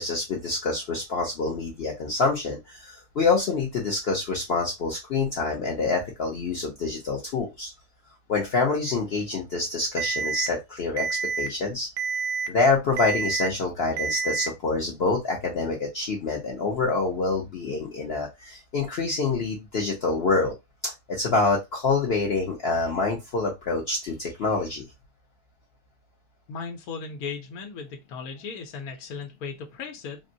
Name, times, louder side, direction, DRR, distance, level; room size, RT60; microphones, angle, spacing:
voice 1, 0.0-7.7 8.3-11.1 11.4-11.9 12.5-20.5 20.8-24.8, left 3 dB, 55° left, 0.8 m, -26 dB
Alarm, 10.0-10.5 11.0-11.5 12.0-12.5 13.0-13.5 14.0-14.5, right 5 dB, 85° right, 1.1 m, -28 dB
voice 2, 26.5-30.2, left 5 dB, 75° left, 1.1 m, -36 dB
3.7 x 2.1 x 2.6 m
omnidirectional pair, 1.6 m